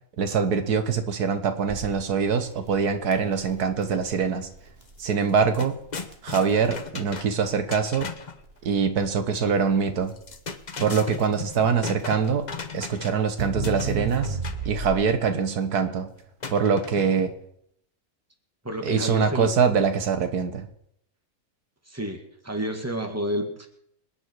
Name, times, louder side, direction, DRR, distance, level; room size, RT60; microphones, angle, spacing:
voice 1, 0.2-4.5 5.0-5.8 6.2-8.1 8.7-10.1 10.8-12.5 12.7-14.4 14.7-16.1 16.5-17.3 18.8-20.7, right 6 dB, 85° right, 9 dB, 1.8 m, -24 dB
Crackle, 1.7-15.3, right 4 dB, 40° right, 2.0 m, -36 dB
sound 1, 4.9-5.0 5.3-8.4 10.1-13.3 13.6-14.7 16.4-17.3, left 5 dB, 35° left, 1.0 m, -37 dB
voice 2, 18.6-19.5 21.9-23.7, equal, 10° right, 4 dB, 2.0 m, -30 dB
27.0 x 9.7 x 4.7 m, 0.71 s
omnidirectional pair, 1.6 m